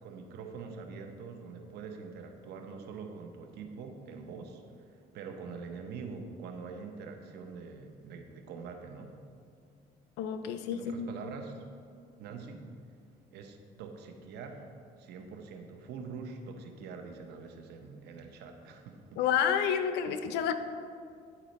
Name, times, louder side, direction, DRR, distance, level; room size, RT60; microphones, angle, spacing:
voice 1, 0.0-9.2 10.7-11.6 12.2-12.7 13.3-14.6 15.0-19.2, right 5 dB, 80° right, 5 dB, 0.8 m, -44 dB
voice 2, 10.2-11.1 19.2-20.5, left 8 dB, 85° left, 10 dB, 0.5 m, -29 dB
10.0 x 4.1 x 4.1 m, 2.3 s
cardioid pair, 110°, 17 cm